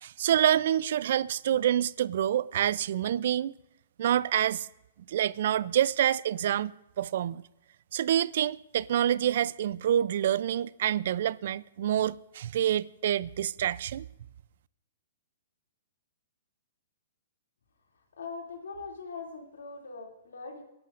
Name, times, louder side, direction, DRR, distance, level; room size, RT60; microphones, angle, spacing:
voice 1, 0.0-3.5 4.0-4.7 5.1-7.4 7.9-14.1, right 10 dB, 60° right, 0.3 m, -27 dB
voice 2, 18.2-20.6, left 4 dB, 90° left, 2.5 m, -41 dB
23.0 x 11.0 x 2.5 m
hypercardioid pair, 145°, 0 cm